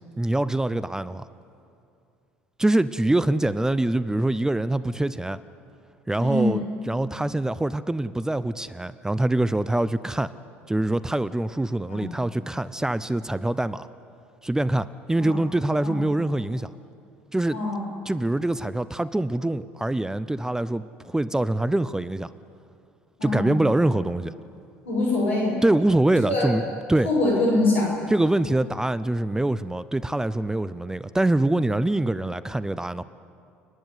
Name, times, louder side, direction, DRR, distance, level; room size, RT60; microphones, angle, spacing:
voice 1, 0.2-1.2 2.6-5.4 6.1-10.3 10.7-13.9 14.4-16.7 17.3-17.6 18.1-22.3 23.2-24.3 25.6-26.6 26.9-27.1 28.1-33.0, right 1 dB, 10° right, 15 dB, 0.6 m, -24 dB
voice 2, 6.2-6.6 11.9-12.1 15.2-15.4 15.8-16.0 17.5-17.8 23.2-23.6 24.9-25.5 26.3-26.5 27.0-27.9, left 2 dB, 80° left, -3 dB, 7.1 m, -23 dB
30.0 x 10.5 x 9.4 m, 2.5 s
hypercardioid pair, 65°, 7 cm